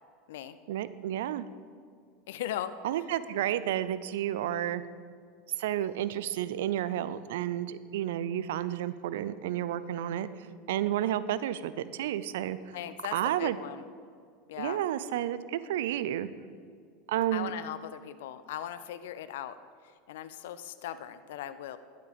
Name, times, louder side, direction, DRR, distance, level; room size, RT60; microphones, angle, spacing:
voice 1, 0.7-1.5 2.8-4.8 5.6-12.8 13.1-13.6 14.6-16.3 17.1-17.5, right 12 dB, 70° right, 14 dB, 0.5 m, -31 dB
voice 2, 2.3-2.7 12.7-13.8 14.5-14.8 17.3-19.5 20.1-21.8, left 11 dB, 70° left, 13 dB, 0.5 m, -38 dB
12.0 x 9.6 x 5.1 m, 2.2 s
hypercardioid pair, 80°, 0 cm